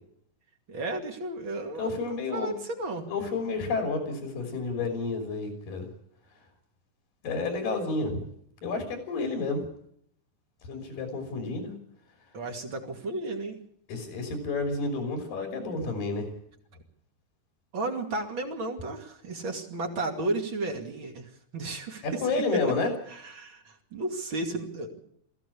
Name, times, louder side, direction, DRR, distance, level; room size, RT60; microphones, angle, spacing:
voice 1, 0.7-1.9 2.3-3.1 12.3-13.6 17.7-22.2 22.5-22.6 23.1-25.0, right 2 dB, 40° right, 3 dB, 3.0 m, -33 dB
voice 2, 1.8-2.6 3.1-5.9 7.2-8.2 8.6-9.6 10.6-11.7 13.9-16.3 22.0-22.9, left 3 dB, 80° left, 3 dB, 4.8 m, -30 dB
20.5 x 15.5 x 8.5 m, 0.70 s
omnidirectional pair, 3.9 m